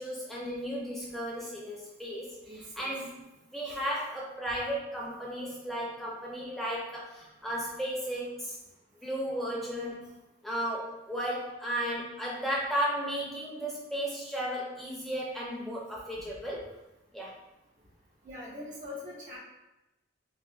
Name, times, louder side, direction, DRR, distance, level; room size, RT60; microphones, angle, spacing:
voice 1, 0.0-3.2 3.5-8.6 9.0-10.1 10.4-16.6 17.1-17.4, equal, ahead, -5 dB, 0.6 m, -34 dB
voice 2, 2.5-2.9 3.7-3.8 12.6-12.7 18.2-19.4, left 2 dB, 40° right, -5 dB, 1.0 m, -43 dB
3.8 x 2.5 x 2.4 m, 0.97 s
head